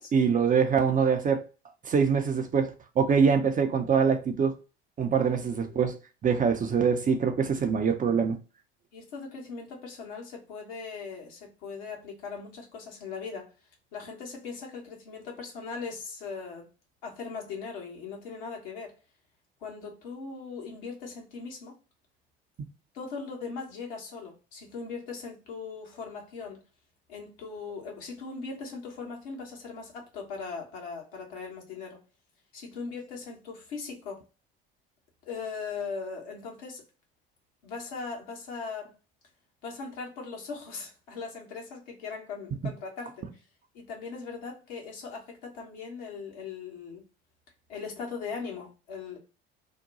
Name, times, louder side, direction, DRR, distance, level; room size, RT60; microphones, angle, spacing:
voice 1, 0.1-1.4 1.8-4.6 5.0-6.0 6.2-8.4, right 6 dB, 25° right, 0.5 m, -24 dB
voice 2, 5.3-5.8 8.9-13.5 13.9-16.7 17.0-18.9 19.6-21.7 22.9-26.6 27.1-32.0 32.5-34.2 35.2-36.8 37.6-38.9 39.6-43.4 43.7-47.0 47.7-49.2, left 5 dB, 65° left, 1.2 m, -39 dB
2.8 x 2.2 x 3.9 m
figure-of-eight pair, 60°, 30 cm